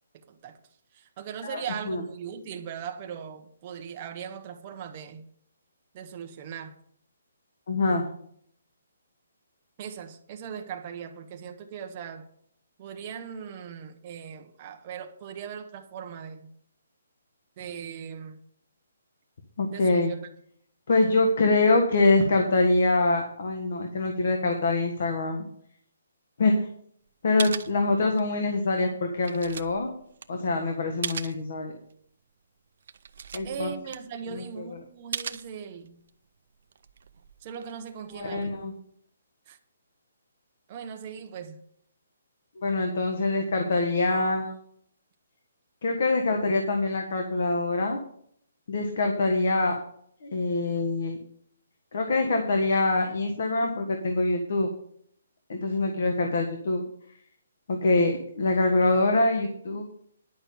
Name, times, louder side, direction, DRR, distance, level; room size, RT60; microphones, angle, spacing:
voice 1, 0.1-0.6 0.9-5.3 5.9-6.7 9.8-12.3 12.8-16.5 17.6-18.4 19.7-20.2 33.4-36.0 37.4-38.6 39.5-39.6 40.7-41.6, right 7 dB, 25° right, 1.0 m, -39 dB
voice 2, 7.7-8.1 19.6-20.1 20.9-25.5 26.4-26.7 27.2-29.9 30.3-31.7 33.3-33.7 34.3-34.7 38.1-38.7 42.6-44.5 45.8-48.0 48.7-49.8 50.2-51.2 51.9-54.7 55.5-56.8 57.7-59.8, left 2 dB, 50° left, 1.5 m, -24 dB
sound 1, 27.1-27.2 27.4-28.4 28.7-31.5 31.9-32.0 32.4-32.5 32.8-34.5 35.1-36.1 36.6-38.8, right 7 dB, 50° right, 0.6 m, -38 dB
10.5 x 6.1 x 7.0 m
hypercardioid pair, 175°, 0 cm